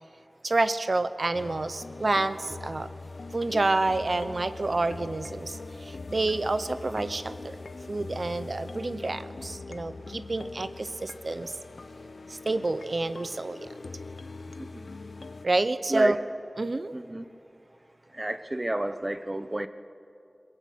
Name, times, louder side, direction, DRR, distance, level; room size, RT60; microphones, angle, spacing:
voice 1, 0.4-2.9 3.3-7.6 7.9-11.5 12.3-13.7 15.4-16.2 16.6-16.9, right 2 dB, 65° right, 12 dB, 1.0 m, -28 dB
sound 1, 1.3-15.5, left 3 dB, 90° left, 0.8 m, -42 dB
voice 2, 16.9-17.2 18.1-19.7, right 1 dB, 30° right, 11 dB, 1.1 m, -30 dB
24.5 x 21.0 x 8.6 m, 2.6 s
wide cardioid pair, 70°, 0 cm